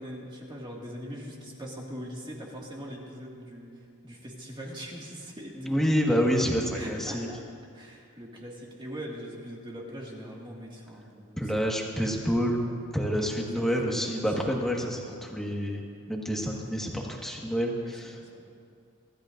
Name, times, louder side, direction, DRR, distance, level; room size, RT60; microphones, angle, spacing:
voice 1, 0.0-3.7 4.0-5.8 6.7-7.4 7.7-11.8 13.6-14.3 16.5-16.6 17.8-18.5, equal, 20° right, -3 dB, 2.0 m, -42 dB
voice 2, 5.6-7.3 11.4-12.6 12.9-15.8 16.1-18.2, equal, ahead, -2 dB, 1.6 m, -28 dB
25.0 x 13.5 x 2.6 m, 2.4 s
head